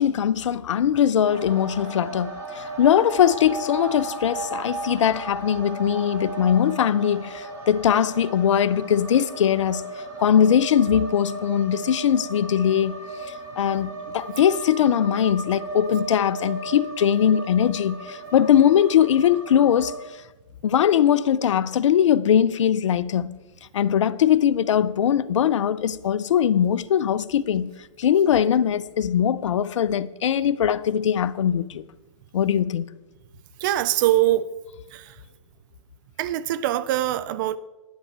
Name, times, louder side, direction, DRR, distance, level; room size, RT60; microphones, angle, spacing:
voice 1, 0.0-9.8 10.2-13.0 13.6-19.9 20.6-23.4 23.7-27.7 28.0-31.8 32.3-32.9, left 9 dB, 70° left, 0.5 m, -21 dB
sound 1, 1.3-20.0, right 2 dB, 20° right, 2.0 m, -36 dB
voice 2, 33.6-34.6 34.9-35.2 36.2-37.6, right 13 dB, 40° right, 0.4 m, -23 dB
11.0 x 10.5 x 4.5 m
hypercardioid pair, 130°, 16 cm